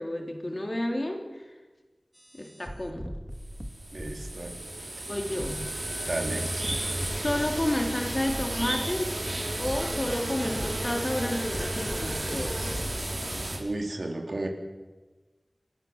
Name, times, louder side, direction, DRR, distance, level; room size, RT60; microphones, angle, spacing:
voice 1, 0.0-1.5 2.3-3.2 5.1-5.7 7.2-9.1 9.6-12.8, left 1 dB, 35° left, 3 dB, 3.6 m, -31 dB
sound 1, 2.1-4.8 5.4-7.7 8.3-9.1 9.7-13.4, equal, 5° right, 2.2 m, -41 dB
sound 2, 3.5-13.6, right 1 dB, 50° right, 5.0 m, -33 dB
voice 2, 3.9-4.6 6.1-6.5 13.6-14.5, right 2 dB, 70° right, 3 dB, 3.7 m, -33 dB
29.0 x 14.0 x 7.4 m, 1.3 s
wide cardioid pair, 60°, 0 cm